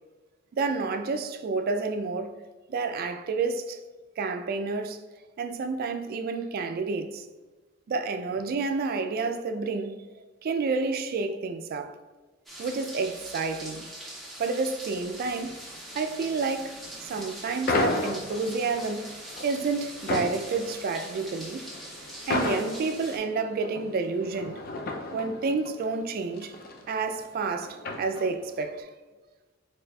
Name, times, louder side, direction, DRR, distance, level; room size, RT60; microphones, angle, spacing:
voice 1, 0.5-2.3 2.7-3.8 4.2-5.0 5.4-7.3 7.9-10.0 10.4-12.0 12.6-13.9 14.4-15.6 15.9-19.1 19.4-21.6 22.3-24.6 25.1-26.5 26.9-28.9, right 4 dB, 50° right, 0.3 m, -29 dB
sound 1, 12.5-23.2, right 1 dB, ahead, 0.7 m, -43 dB
sound 2, 17.7-28.6, left 2 dB, 50° left, 0.5 m, -34 dB
4.0 x 3.2 x 2.3 m
head